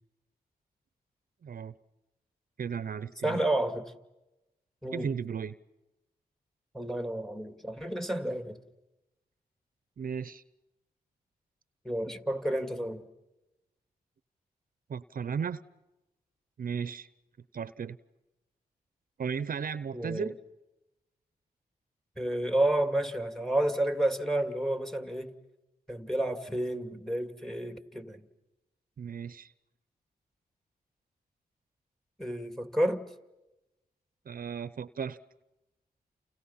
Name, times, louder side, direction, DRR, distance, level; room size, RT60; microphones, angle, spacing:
voice 1, 1.4-1.7 2.6-3.4 4.9-5.5 10.0-10.4 14.9-15.6 16.6-17.1 17.5-18.0 19.2-20.4 29.0-29.5 34.3-35.2, right 6 dB, 60° right, 0.9 m, -35 dB
voice 2, 3.2-3.9 4.8-5.1 6.7-8.6 11.8-13.1 19.9-20.3 22.2-25.4 25.9-28.2 32.2-33.0, right 1 dB, ahead, 2.6 m, -30 dB
29.5 x 29.5 x 5.7 m
cardioid pair, 65°, 16 cm